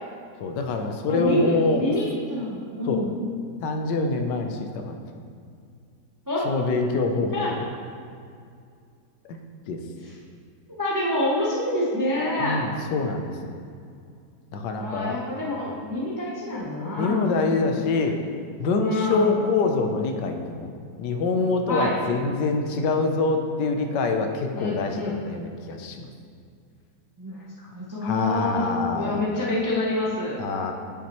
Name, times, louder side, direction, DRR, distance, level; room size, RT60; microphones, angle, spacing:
voice 1, 0.4-1.9 2.8-3.1 3.6-4.9 6.4-7.6 9.7-9.8 12.4-13.3 14.5-15.2 17.0-18.2 18.6-20.7 21.0-26.1 28.0-29.3 30.4-30.7, left 3 dB, 85° left, 4 dB, 1.3 m, -25 dB
voice 2, 1.1-3.2 6.3-6.4 7.3-7.5 10.0-10.1 10.8-12.6 14.8-17.2 18.8-19.4 21.7-21.9 24.5-25.2 27.2-28.6 28.9-30.4, left 1 dB, 25° right, -5 dB, 0.4 m, -27 dB
8.4 x 5.9 x 3.0 m, 2.3 s
omnidirectional pair, 1.8 m